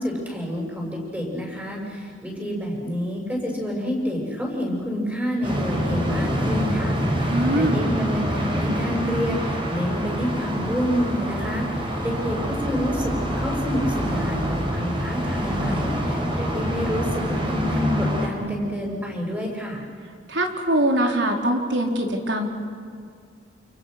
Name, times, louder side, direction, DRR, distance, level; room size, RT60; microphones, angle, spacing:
voice 1, 0.0-19.8, equal, 10° right, -1 dB, 7.0 m, -28 dB
sound 1, 5.4-18.3, equal, 30° right, 4.5 m, -26 dB
voice 2, 7.3-7.8 20.3-22.5, right 1 dB, 85° right, 2 dB, 4.1 m, -22 dB
29.0 x 28.5 x 6.7 m, 2.3 s
head